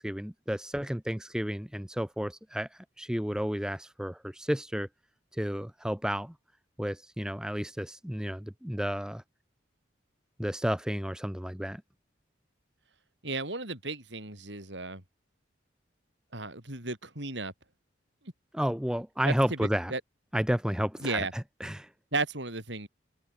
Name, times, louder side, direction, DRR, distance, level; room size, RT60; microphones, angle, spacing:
voice 1, 0.0-4.9 5.3-6.3 6.8-9.2 10.4-11.8 18.5-19.9 20.3-21.9, equal, 5° right, 0.7 m, -32 dB
voice 2, 13.2-15.0 16.3-17.5 19.3-19.4 19.6-20.0 21.0-21.3 22.1-22.9, right 3 dB, 70° right, 7.3 m, -34 dB
open air
head